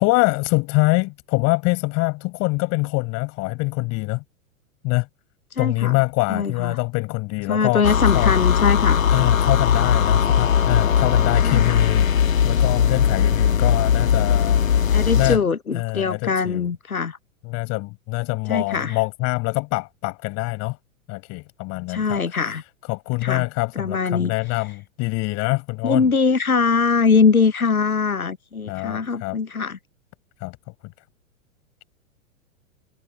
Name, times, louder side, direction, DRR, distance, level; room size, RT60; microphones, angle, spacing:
voice 1, 0.0-4.2 4.8-5.1 5.6-7.8 8.1-8.3 9.1-15.4 15.7-16.7 17.4-20.8 21.1-22.5 22.9-26.1 28.7-29.4 30.4-30.6, left 26 dB, 40° left, 5.2 m, -24 dB
voice 2, 5.5-5.9 6.3-6.8 7.5-9.0 11.4-11.8 14.9-17.2 18.5-19.0 21.9-22.6 23.2-23.4 23.8-24.3 25.8-29.8, left 5 dB, 90° left, 0.9 m, -22 dB
sound 1, 7.8-15.4, left 8 dB, 70° left, 1.8 m, -19 dB
figure-of-eight pair, 100°, 42 cm